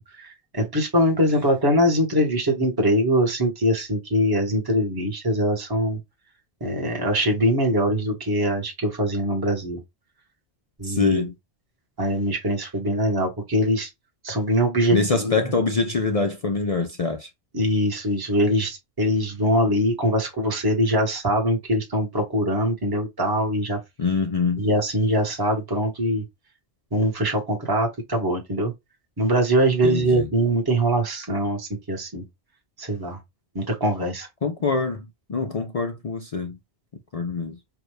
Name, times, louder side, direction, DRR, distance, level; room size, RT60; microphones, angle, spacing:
voice 1, 0.2-6.0 6.6-9.8 10.8-11.2 12.0-13.9 14.2-15.3 17.5-23.8 24.6-26.2 26.9-28.7 29.2-32.2 32.8-33.2 33.5-34.3, equal, 20° right, 1.3 m, -22 dB
voice 2, 10.8-11.3 14.9-17.3 24.0-24.6 29.8-30.3 34.4-36.6 37.1-37.6, left 4 dB, 45° left, 0.5 m, -24 dB
4.7 x 2.6 x 3.1 m
omnidirectional pair, 1.1 m